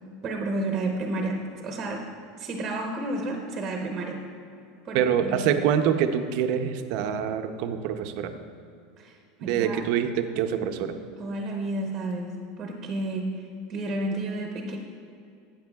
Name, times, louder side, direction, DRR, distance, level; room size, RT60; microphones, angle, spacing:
voice 1, 0.2-2.0 2.4-4.2 4.8-5.5 9.0-9.8 11.2-12.3 12.6-14.8, right 2 dB, 20° right, 1 dB, 0.8 m, -31 dB
voice 2, 4.9-8.4 9.4-10.9, right 8 dB, 50° right, 8 dB, 0.5 m, -25 dB
12.5 x 8.8 x 2.3 m, 2.4 s
supercardioid pair, 165°, 0 cm